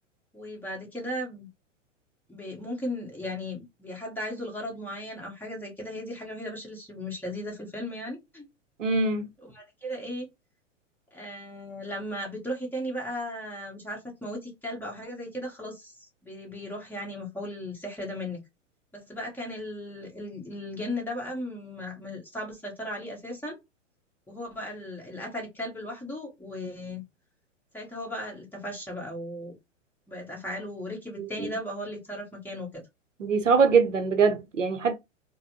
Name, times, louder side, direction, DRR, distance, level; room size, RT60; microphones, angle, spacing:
voice 1, 0.3-1.5 2.3-8.5 9.4-10.3 11.1-18.4 18.9-23.6 24.3-27.0 27.7-29.6 30.1-32.8, left 1 dB, 5° left, 1.1 m, -36 dB
voice 2, 8.8-9.3 31.2-31.5 33.2-34.9, right 5 dB, 80° right, 0.7 m, -23 dB
4.0 x 2.1 x 2.7 m
figure-of-eight pair, 100°, 37 cm